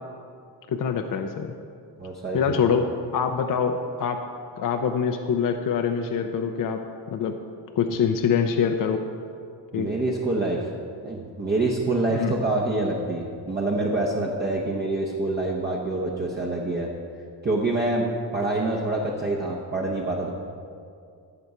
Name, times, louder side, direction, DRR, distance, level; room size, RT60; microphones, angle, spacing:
voice 1, 0.7-1.5 2.3-4.2 4.6-6.8 7.1-7.4 7.8-9.0 9.7-9.9 12.2-12.4, left 6 dB, 50° left, 6 dB, 0.5 m, -24 dB
voice 2, 2.0-2.9 9.7-10.7 11.0-16.9 17.4-18.0 18.3-20.3, right 2 dB, 25° right, -3 dB, 0.8 m, -26 dB
13.5 x 6.7 x 4.9 m, 2.3 s
wide cardioid pair, 170°, 44 cm